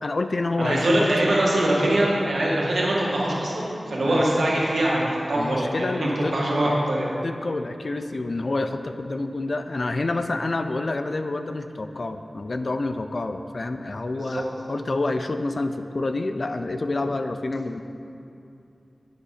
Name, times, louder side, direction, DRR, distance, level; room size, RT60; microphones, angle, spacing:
voice 1, 0.0-1.1 4.0-4.2 5.3-17.8, left 2 dB, 55° left, 8 dB, 0.5 m, -28 dB
voice 2, 0.6-7.1 14.3-14.4, right 1 dB, 85° right, -5 dB, 2.1 m, -23 dB
10.5 x 8.6 x 4.3 m, 2.6 s
wide cardioid pair, 75°, 0 cm